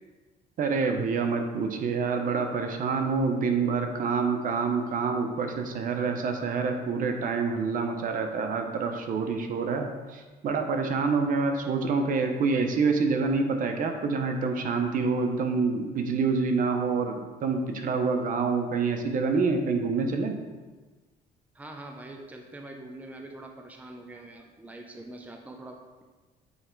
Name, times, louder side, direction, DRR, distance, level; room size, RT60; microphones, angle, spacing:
voice 1, 0.6-20.4, right 4 dB, 55° right, 5 dB, 0.8 m, -27 dB
voice 2, 21.5-26.0, right 2 dB, 10° right, 3 dB, 0.6 m, -44 dB
8.0 x 3.3 x 4.6 m, 1.3 s
cardioid pair, 110°, 17 cm